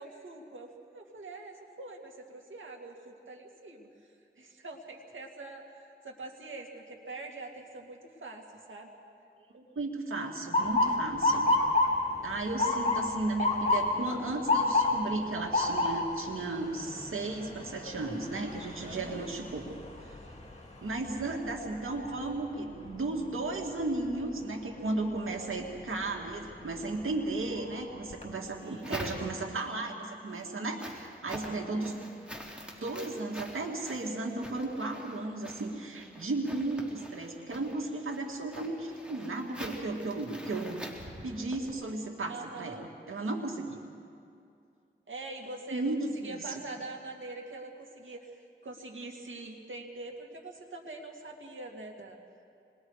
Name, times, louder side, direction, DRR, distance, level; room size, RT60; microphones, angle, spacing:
voice 1, 0.0-8.9 18.8-19.2 28.6-29.0 31.4-31.9 42.3-42.9 45.1-52.2, right 2 dB, 70° right, 0 dB, 2.5 m, -44 dB
voice 2, 9.5-11.5 12.2-19.6 20.8-32.0 32.8-40.8 41.2-43.8 45.7-46.4, right 2 dB, 90° right, 1 dB, 2.2 m, -35 dB
Motor vehicle (road) / Siren, 10.5-22.4 22.9-23.3 24.1-24.4 26.3-26.5 27.0-27.1 27.5-28.2, left 2 dB, 30° left, 2.9 m, -30 dB
sound 1, 28.2-29.7 30.1-41.7, equal, 5° right, 3.7 m, -45 dB
26.0 x 21.5 x 4.9 m, 2.5 s
cardioid pair, 45°, 21 cm